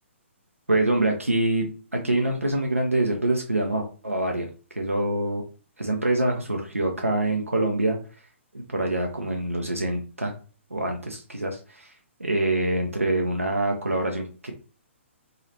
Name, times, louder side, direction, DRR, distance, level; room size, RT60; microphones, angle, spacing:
voice 1, 0.7-4.5 4.8-5.4 5.8-8.0 8.5-10.3 10.7-11.9 12.2-14.5, right 2 dB, 90° right, 2 dB, 0.5 m, -25 dB
3.0 x 2.3 x 2.8 m, 0.36 s
figure-of-eight pair, 125°, 7 cm